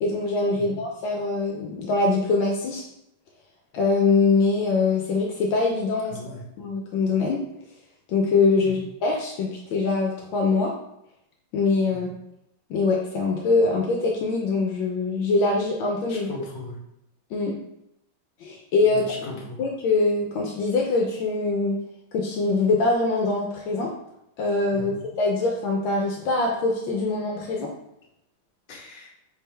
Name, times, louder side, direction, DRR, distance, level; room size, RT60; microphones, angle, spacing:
voice 1, 0.0-2.8 3.7-6.2 6.6-7.4 8.1-10.7 11.5-12.1 12.7-16.3 17.3-17.5 18.4-19.0 19.6-21.8 22.1-23.9 24.4-24.9 25.2-27.7, left 3 dB, 75° left, 0 dB, 1.2 m, -23 dB
voice 2, 6.1-6.4 8.6-8.8 11.9-12.1 16.1-16.8 18.9-19.6 24.7-25.0 28.7-29.1, left 2 dB, 35° left, -5 dB, 0.9 m, -39 dB
4.3 x 3.4 x 3.2 m, 0.81 s
omnidirectional pair, 2.3 m